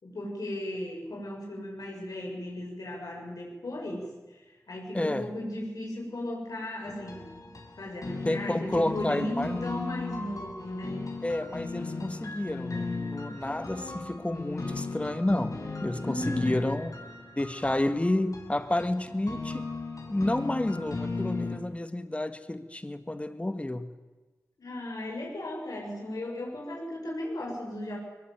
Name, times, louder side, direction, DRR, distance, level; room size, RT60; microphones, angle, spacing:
voice 1, 0.0-7.5 7.8-11.1 16.0-16.6 24.6-28.0, left 1 dB, 85° left, 0 dB, 6.8 m, -36 dB
voice 2, 4.9-5.3 8.2-9.6 11.2-16.9 17.4-19.7 20.1-23.9, left 1 dB, 20° left, 10 dB, 1.7 m, -30 dB
sound 1, 6.8-21.6, left 3 dB, 70° left, 4.6 m, -36 dB
22.5 x 21.0 x 9.1 m, 1.2 s
wide cardioid pair, 80°, 6 cm